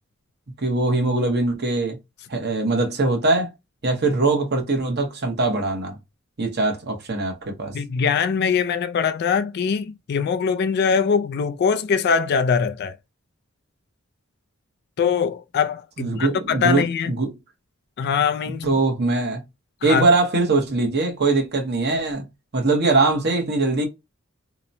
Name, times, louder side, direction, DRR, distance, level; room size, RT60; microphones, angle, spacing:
voice 1, 0.6-2.0 2.3-3.5 3.8-6.0 6.4-7.7 16.0-16.8 17.2-17.3 18.6-19.4 19.8-22.2 22.5-23.9, right 3 dB, 55° right, 1.0 m, -21 dB
voice 2, 7.7-13.0 15.0-17.1 18.0-18.8 19.8-20.1, left 6 dB, 50° left, 0.3 m, -22 dB
2.9 x 2.1 x 2.5 m
head